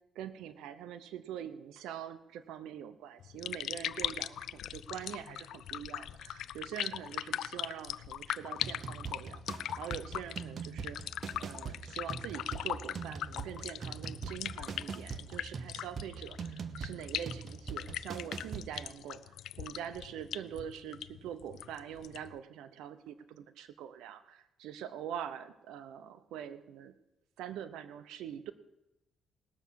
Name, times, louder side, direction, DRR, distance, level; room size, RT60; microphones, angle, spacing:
voice 1, 0.1-11.1 11.4-26.9 27.4-28.5, right 9 dB, 90° right, 11 dB, 0.8 m, -44 dB
sound 1, 3.2-22.4, left 11 dB, 75° left, 0.4 m, -40 dB
sound 2, 8.6-18.9, right 5 dB, 50° right, 1.0 m, -43 dB
19.0 x 7.0 x 6.4 m, 0.93 s
cardioid pair, 90°, 0 cm